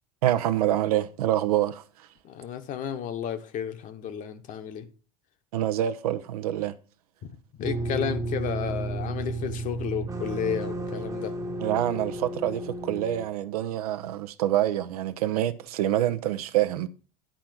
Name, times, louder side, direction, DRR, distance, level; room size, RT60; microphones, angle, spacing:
voice 1, 0.2-1.8 5.5-6.7 11.6-16.9, right 12 dB, 70° right, 0.8 m, -26 dB
voice 2, 2.2-4.9 7.2-11.3, left 8 dB, 40° left, 1.3 m, -32 dB
sound 1, 7.6-13.3, right 2 dB, 15° right, 1.1 m, -32 dB
10.5 x 4.4 x 7.6 m
figure-of-eight pair, 80°, 20 cm